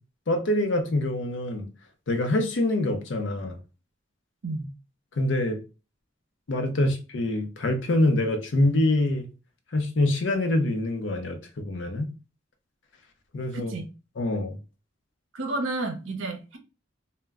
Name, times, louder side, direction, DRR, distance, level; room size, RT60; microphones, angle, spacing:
voice 1, 0.3-1.7 2.1-3.6 5.2-5.6 6.5-9.3 9.7-12.1 13.3-13.7 14.2-14.6, left 1 dB, 65° left, 0.5 m, -25 dB
voice 2, 13.5-13.9 15.3-16.6, right 2 dB, 75° right, 0.6 m, -31 dB
2.1 x 2.1 x 3.4 m
head